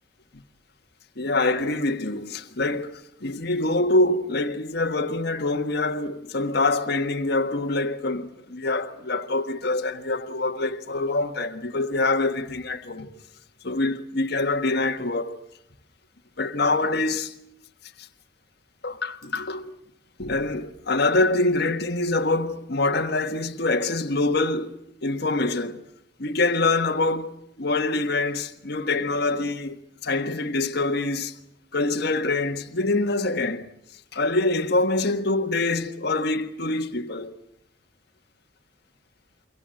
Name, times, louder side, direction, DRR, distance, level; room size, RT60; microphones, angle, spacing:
voice 1, 1.2-13.1 13.6-15.3 16.4-17.3 18.8-19.8 20.2-24.7 25.0-25.8 26.2-29.8 30.0-31.3 31.7-33.7 34.1-37.3, left 2 dB, 55° left, 1.6 m, -25 dB
28.0 x 24.5 x 7.7 m
head